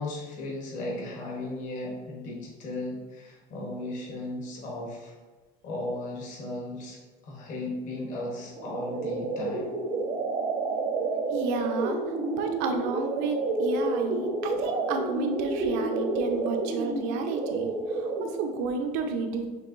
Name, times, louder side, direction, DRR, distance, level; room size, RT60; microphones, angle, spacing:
voice 1, 0.0-5.1 5.6-9.7, left 2 dB, 50° left, -2 dB, 1.2 m, -36 dB
sound 1, 8.6-18.5, right 3 dB, 30° right, 0.5 m, -30 dB
voice 2, 11.3-12.0 12.4-19.5, right 4 dB, 85° right, 5 dB, 0.6 m, -31 dB
6.3 x 2.9 x 2.5 m, 1.3 s
cardioid pair, 150°, 17 cm